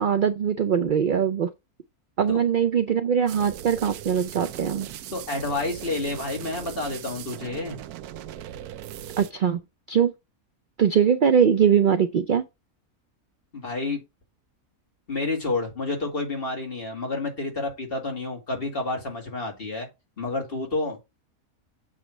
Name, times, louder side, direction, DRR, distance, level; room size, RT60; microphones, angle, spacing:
voice 1, 0.0-1.5 2.2-4.9 9.2-9.6 9.9-10.1 10.8-12.4, right 8 dB, 70° right, 0.4 m, -21 dB
sound 1, 3.3-9.3, right 11 dB, 85° right, 1.1 m, -39 dB
voice 2, 5.1-7.8 13.5-14.0 15.1-19.9 20.2-21.0, left 2 dB, 40° left, 2.4 m, -29 dB
7.4 x 3.1 x 6.0 m
omnidirectional pair, 1.5 m